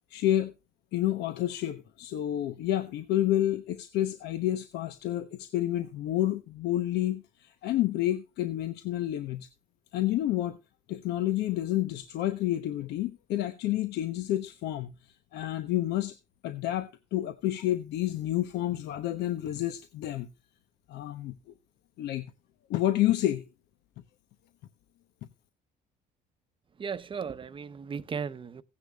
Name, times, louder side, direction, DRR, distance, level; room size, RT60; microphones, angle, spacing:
voice 1, 0.1-0.5 0.9-9.5 9.9-10.6 10.9-14.9 15.3-16.1 16.4-20.3 20.9-21.4 22.0-22.3 22.7-23.5, left 13 dB, 80° left, 1.0 m, -29 dB
voice 2, 26.8-28.6, right 6 dB, 30° right, 0.8 m, -36 dB
16.5 x 9.9 x 2.3 m
cardioid pair, 110°, 17 cm